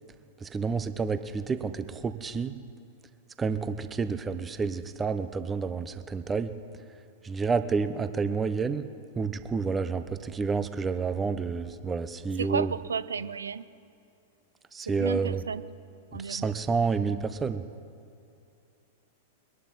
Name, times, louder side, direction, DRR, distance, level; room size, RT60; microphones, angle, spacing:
voice 1, 0.4-2.5 3.4-6.5 7.2-8.9 9.2-12.7 14.7-15.4 16.1-17.6, right 5 dB, 15° right, 11 dB, 0.6 m, -29 dB
voice 2, 12.4-13.7 14.8-15.6 16.1-16.5, right 6 dB, 70° right, 16 dB, 0.4 m, -33 dB
22.5 x 11.0 x 4.0 m, 2.5 s
figure-of-eight pair, 95°, 0 cm